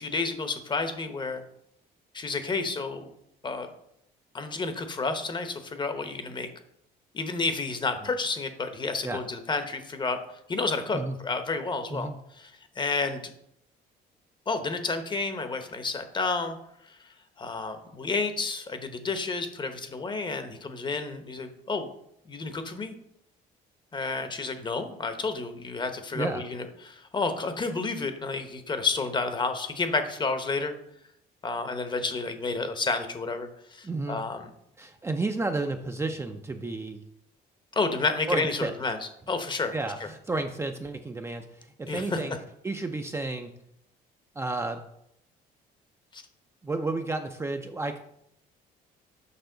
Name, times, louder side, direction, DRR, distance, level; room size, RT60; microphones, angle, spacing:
voice 1, 0.0-1.4 2.1-3.1 3.4-3.7 4.3-6.5 7.1-10.2 10.5-12.5 12.8-13.2 14.5-16.6 17.4-21.9 22.3-22.9 23.9-30.7 31.4-34.4 37.7-39.0 39.3-39.7 40.0-40.1 41.9-42.2 46.1-46.2, left 3 dB, 25° left, 8 dB, 0.9 m, -30 dB
voice 2, 26.1-26.4 33.8-34.2 34.8-37.0 38.3-38.7 39.7-42.3 42.6-43.5 44.4-44.8 46.6-48.0, right 2 dB, 15° right, 5 dB, 0.5 m, -31 dB
6.8 x 5.5 x 3.9 m, 0.74 s
cardioid pair, 110°, 17 cm